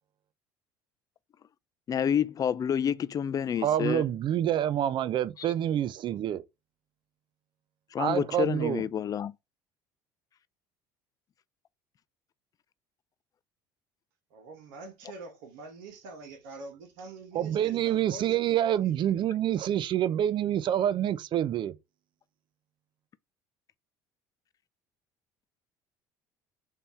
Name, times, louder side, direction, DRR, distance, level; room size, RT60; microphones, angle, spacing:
voice 1, 1.9-4.0 7.9-9.3, left 8 dB, 35° left, 0.4 m, -28 dB
voice 2, 3.6-6.4 8.0-8.8 17.3-21.7, right 11 dB, 50° right, 0.5 m, -27 dB
voice 3, 14.3-19.1, right 3 dB, 80° right, 1.3 m, -45 dB
3.5 x 2.8 x 4.2 m
supercardioid pair, 80°, 11 cm